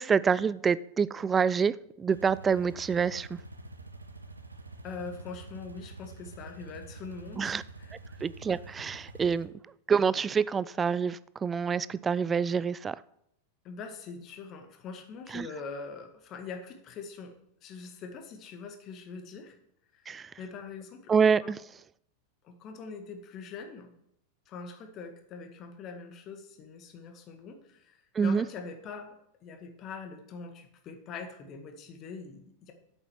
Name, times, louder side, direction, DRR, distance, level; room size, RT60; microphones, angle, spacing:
voice 1, 0.0-3.3 7.4-7.6 8.2-9.5 9.9-13.0 15.3-15.5 20.1-20.3 21.1-21.6 28.2-28.5, right 6 dB, 20° right, 19 dB, 0.4 m, -27 dB
sound 1, 2.1-9.5, right 2 dB, 80° right, 1.0 m, -47 dB
voice 2, 4.8-7.5 7.8-8.0 13.6-17.3 17.6-19.6 19.9-20.1 20.4-21.1 21.4-21.5 22.4-23.9 24.5-29.2 29.4-32.7, left 5 dB, 35° left, 6 dB, 1.8 m, -43 dB
8.2 x 8.0 x 7.3 m, 0.75 s
figure-of-eight pair, 90°, 0 cm